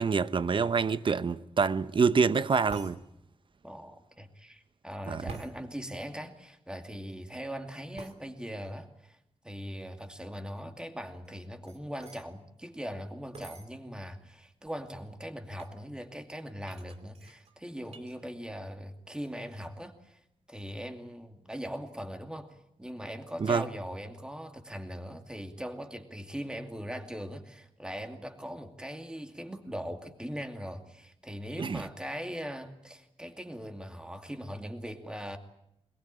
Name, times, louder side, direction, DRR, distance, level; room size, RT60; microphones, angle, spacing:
voice 1, 0.0-3.0 5.1-5.2 23.4-23.6 31.6-31.8, right 5 dB, 50° right, 0.9 m, -26 dB
sound 1, 2.7-3.0 5.3-5.5 7.9-8.2 11.2-12.3 13.3-13.7 14.4-14.5 14.6-15.0 15.6-15.8 16.6-18.1 18.5-18.9 19.2-19.7, right 4 dB, 70° right, 2.8 m, -47 dB
voice 2, 3.6-9.2 9.4-20.2 20.5-35.4, equal, 5° right, 2.4 m, -40 dB
22.5 x 21.5 x 8.8 m
wide cardioid pair, 130°, 11 cm